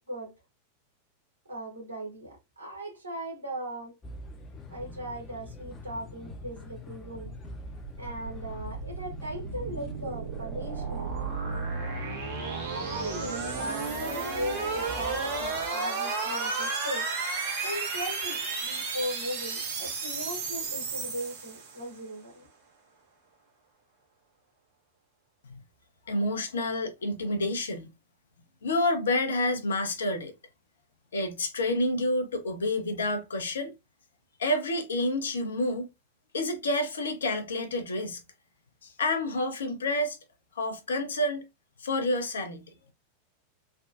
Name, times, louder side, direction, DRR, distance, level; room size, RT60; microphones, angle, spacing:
voice 1, 1.5-3.9 4.7-7.3 8.0-11.1 12.4-17.1 17.6-22.5, equal, 80° right, 1.6 m, -38 dB
sound 1, 4.0-15.7, equal, 20° left, 0.7 m, -45 dB
sound 2, 7.6-22.0, right 4 dB, 45° right, 1.2 m, -33 dB
voice 2, 26.1-27.9 28.6-30.3 31.1-33.7 34.4-35.9 36.3-38.2 38.8-40.2 40.6-41.4 41.8-42.6, left 1 dB, 70° left, 0.7 m, -29 dB
3.4 x 2.2 x 2.6 m
figure-of-eight pair, 90°, 0 cm